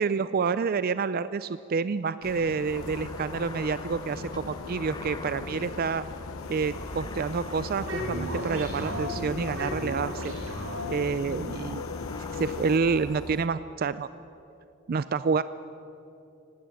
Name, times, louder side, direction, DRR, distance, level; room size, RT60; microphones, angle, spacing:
voice 1, 0.0-6.0 6.5-10.3 10.9-11.8 12.3-14.1 14.9-15.4, right 5 dB, 45° right, 15 dB, 0.4 m, -28 dB
sound 1, 2.2-12.8, left 5 dB, 75° left, 0.7 m, -40 dB
sound 2, 2.6-13.5, left 2 dB, 20° left, 0.7 m, -41 dB
sound 3, 7.7-11.3, equal, 80° right, 4.0 m, -35 dB
19.0 x 17.0 x 8.3 m, 2.8 s
head